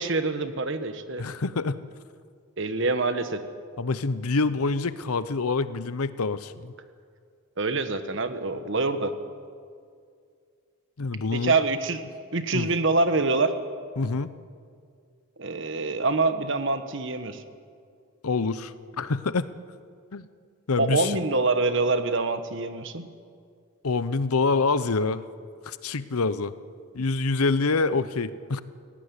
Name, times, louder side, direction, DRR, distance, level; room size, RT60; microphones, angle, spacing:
voice 1, 0.0-1.2 2.6-3.4 7.6-9.1 11.3-12.0 12.3-13.5 15.4-17.4 20.8-23.1, right 3 dB, 55° right, 10 dB, 1.3 m, -25 dB
voice 2, 1.2-1.8 3.8-6.7 11.0-11.6 12.5-12.7 14.0-14.3 18.2-19.5 20.1-20.3 20.7-21.2 23.8-25.2 25.7-26.5 26.9-28.6, left 3 dB, 90° left, 15 dB, 0.8 m, -26 dB
17.5 x 16.5 x 9.8 m, 2.2 s
head